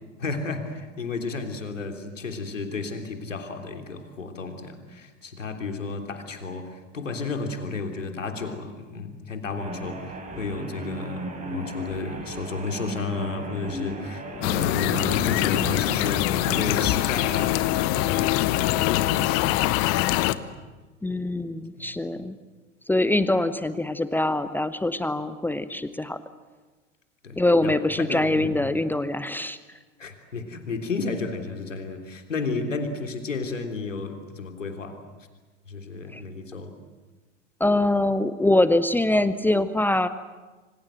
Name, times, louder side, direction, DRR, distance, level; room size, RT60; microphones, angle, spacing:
voice 1, 0.2-19.7 20.3-20.5 21.8-22.0 27.2-28.6 30.0-35.0 35.7-36.8, left 4 dB, 75° left, 5 dB, 3.4 m, -32 dB
sound 1, 9.6-17.0, right 2 dB, 20° right, 4.8 m, -36 dB
sound 2, 14.4-20.3, left 16 dB, 35° left, 1.1 m, -23 dB
voice 2, 21.0-22.4 22.9-26.2 27.4-29.6 36.1-36.2 37.6-40.1, left 1 dB, 5° left, 13 dB, 0.8 m, -23 dB
27.0 x 25.5 x 7.9 m, 1.3 s
figure-of-eight pair, 85°, 38 cm